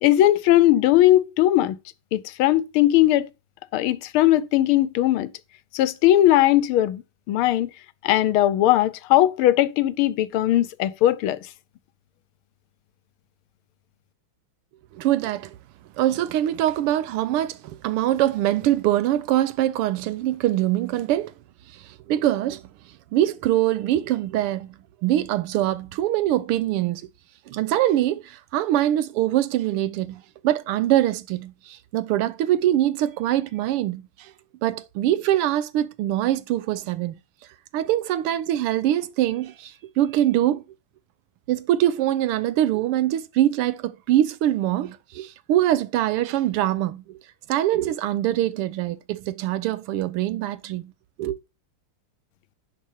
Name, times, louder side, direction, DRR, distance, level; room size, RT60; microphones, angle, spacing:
voice 1, 0.0-1.8 2.1-3.3 3.7-5.3 5.7-7.0 7.3-7.7 8.0-11.4, left 14 dB, 80° left, 1.5 m, -19 dB
voice 2, 14.9-15.6 16.0-21.3 21.7-22.6 23.1-24.7 25.0-27.0 27.5-34.3 34.6-37.1 37.7-40.6 41.5-47.2 47.5-50.9 51.2-51.4, right 13 dB, 90° right, 1.7 m, -23 dB
10.5 x 5.2 x 5.5 m
omnidirectional pair, 2.4 m